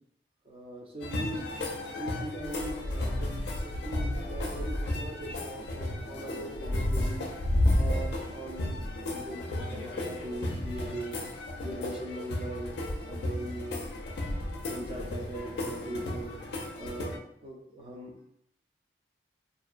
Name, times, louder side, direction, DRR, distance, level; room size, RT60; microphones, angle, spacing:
voice 1, 0.4-7.4 7.7-11.3 11.6-12.7 13.1-13.8 14.6-16.4 16.8-18.3, right 1 dB, 35° right, 0 dB, 0.4 m, -40 dB
sound 1, 1.0-17.2, left 1 dB, 65° left, 0.4 m, -33 dB
2.4 x 2.2 x 2.4 m, 0.72 s
head